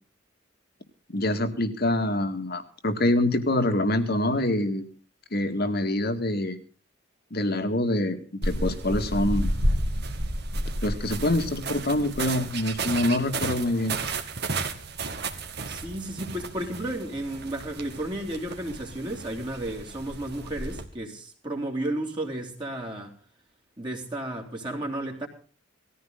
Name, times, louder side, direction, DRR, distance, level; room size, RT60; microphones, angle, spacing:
voice 1, 1.1-4.9 5.3-6.6 7.3-9.5 10.8-14.0, left 1 dB, 50° left, 2.2 m, -25 dB
sound 1, 8.4-20.8, right 2 dB, 50° right, 2.2 m, -32 dB
voice 2, 15.7-23.1 23.8-25.3, right 1 dB, 20° right, 3.0 m, -33 dB
19.5 x 14.5 x 3.9 m
head